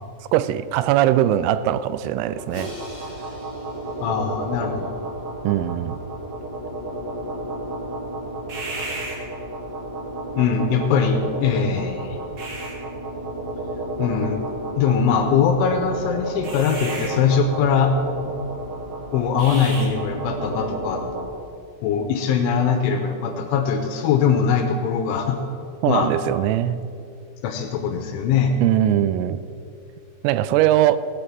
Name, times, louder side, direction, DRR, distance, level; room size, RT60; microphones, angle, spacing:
voice 1, 0.3-2.7 5.4-6.0 25.8-26.9 28.6-29.4 30.2-31.0, right 12 dB, 90° right, 14 dB, 3.2 m, -20 dB
sound 1, 2.2-21.3, right 2 dB, 40° right, 2.2 m, -31 dB
Crash cymbal, 2.5-4.7, left 1 dB, 35° left, 4.1 m, -40 dB
voice 2, 4.0-5.0 10.4-12.2 14.0-14.5 14.8-17.9 19.1-21.0 21.8-25.4 25.9-26.1 27.4-28.5, left 6 dB, 80° left, 5 dB, 3.1 m, -21 dB
16.5 x 7.9 x 6.0 m, 2.5 s
omnidirectional pair, 5.8 m